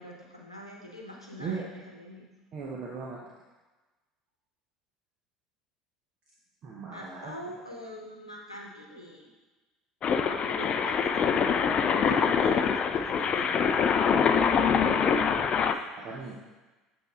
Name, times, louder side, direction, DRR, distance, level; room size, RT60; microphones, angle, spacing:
voice 1, 0.0-2.3 6.9-9.3 10.2-13.8 16.0-16.4, left 1 dB, 90° left, -2 dB, 1.0 m, -44 dB
voice 2, 2.5-3.2 6.6-7.3 16.0-16.4, right 5 dB, 40° right, -4 dB, 1.0 m, -37 dB
sound 1, 10.0-15.7, left 6 dB, 35° left, 0.4 m, -24 dB
8.0 x 4.5 x 3.6 m, 1.2 s
figure-of-eight pair, 65°, 3 cm